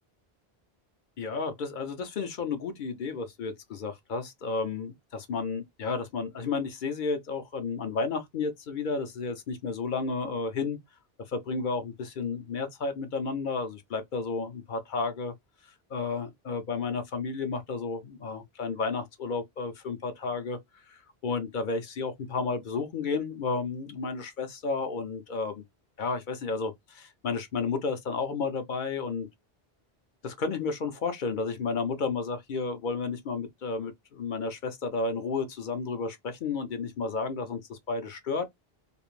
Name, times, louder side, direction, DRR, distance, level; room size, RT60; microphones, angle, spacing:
voice 1, 1.2-10.8 11.3-15.3 15.9-20.6 20.9-25.6 26.0-29.3 30.2-38.5, left 4 dB, 55° left, 0.7 m, -32 dB
2.4 x 2.0 x 3.0 m
omnidirectional pair, 1.1 m